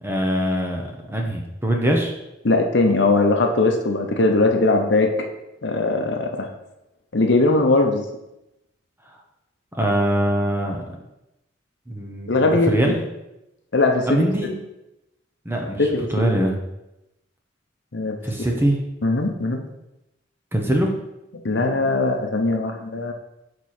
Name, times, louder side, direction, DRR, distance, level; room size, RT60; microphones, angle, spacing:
voice 1, 0.0-2.1 9.7-10.8 11.9-13.0 14.1-14.5 15.4-16.5 18.2-18.8 20.5-20.9, right 1 dB, 10° right, 1 dB, 0.9 m, -22 dB
voice 2, 2.4-5.3 5.6-6.5 7.1-8.0 12.3-13.0 13.7-14.2 15.8-16.3 17.9-18.2 19.0-19.7 21.4-23.1, left 2 dB, 60° left, 3 dB, 0.8 m, -20 dB
6.7 x 4.5 x 4.3 m, 0.92 s
head